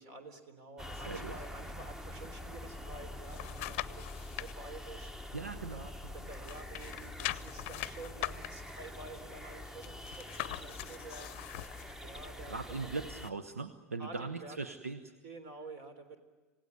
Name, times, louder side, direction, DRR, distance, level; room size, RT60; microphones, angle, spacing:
voice 1, 0.0-4.1 4.4-5.1 5.7-11.3 12.0-12.5 13.0-13.1 14.0-14.6 15.2-16.2, right 2 dB, 50° right, 9 dB, 3.6 m, -49 dB
sound 1, 0.8-13.3, left 1 dB, 5° right, 1.1 m, -45 dB
voice 2, 0.9-1.4 5.3-6.3 12.4-15.1, right 4 dB, 85° right, 10 dB, 1.0 m, -40 dB
sound 2, 2.9-4.5 5.0-6.1 6.4-11.9 12.4-12.5, left 18 dB, 55° left, 0.7 m, -42 dB
27.5 x 17.5 x 9.6 m, 1.3 s
figure-of-eight pair, 85°, 8 cm